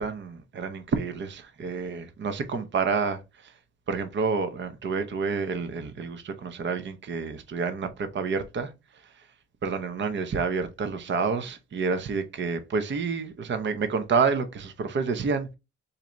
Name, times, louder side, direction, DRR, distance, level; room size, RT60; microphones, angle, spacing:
voice 1, 0.0-3.5 3.9-8.7 9.0-9.2 9.6-15.5, right 5 dB, 40° right, 0.7 m, -29 dB
4.1 x 2.6 x 3.1 m
cardioid pair, 90°, 30 cm